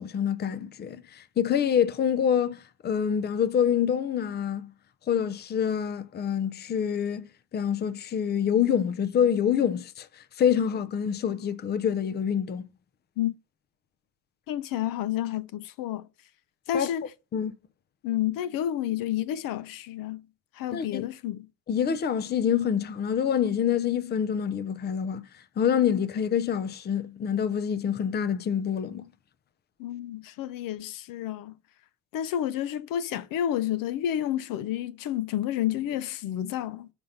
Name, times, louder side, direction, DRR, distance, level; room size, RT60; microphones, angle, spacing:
voice 1, 0.0-4.7 5.1-7.3 7.5-10.1 10.4-12.7 16.7-16.9 17.3-17.5 20.7-21.1 21.7-25.2 25.6-29.1, left 8 dB, 30° left, 0.5 m, -26 dB
voice 2, 14.5-16.1 16.7-17.1 18.0-20.2 20.5-21.5 29.8-31.5 32.1-36.9, left 11 dB, 80° left, 0.7 m, -30 dB
5.5 x 5.2 x 5.7 m
cardioid pair, 145°, 33 cm